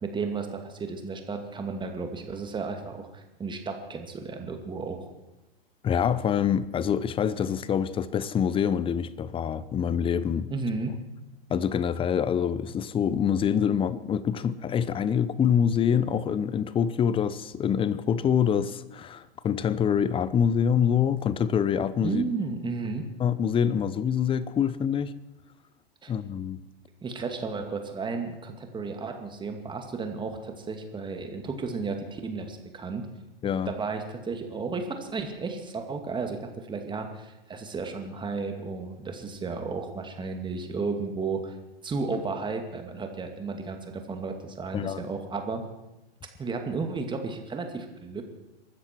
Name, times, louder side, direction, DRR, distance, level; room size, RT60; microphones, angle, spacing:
voice 1, 0.0-5.1 10.5-11.0 22.0-23.0 26.0-26.1 27.0-33.1 33.7-41.6 41.8-45.6 46.4-48.2, right 4 dB, 15° right, 2.3 m, -33 dB
voice 2, 5.8-10.5 11.5-22.2 23.2-25.1 26.1-26.6 33.4-33.7 44.7-45.0, left 8 dB, 15° left, 0.7 m, -25 dB
23.0 x 13.0 x 4.6 m
hypercardioid pair, 105°, 30 cm